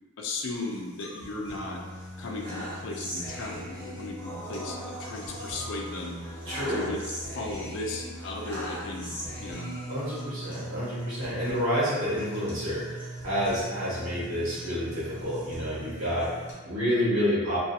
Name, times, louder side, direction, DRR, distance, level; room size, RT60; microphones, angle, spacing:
voice 1, 0.2-1.8 2.2-6.2 6.7-7.0 7.3-9.7, left 2 dB, 55° left, 1 dB, 0.3 m, -36 dB
sound 1, 0.5-16.5, right 1 dB, 10° left, 0.7 m, -39 dB
voice 2, 6.5-6.9 9.9-17.6, equal, 75° right, -10 dB, 1.1 m, -29 dB
2.4 x 2.2 x 2.7 m, 1.3 s
head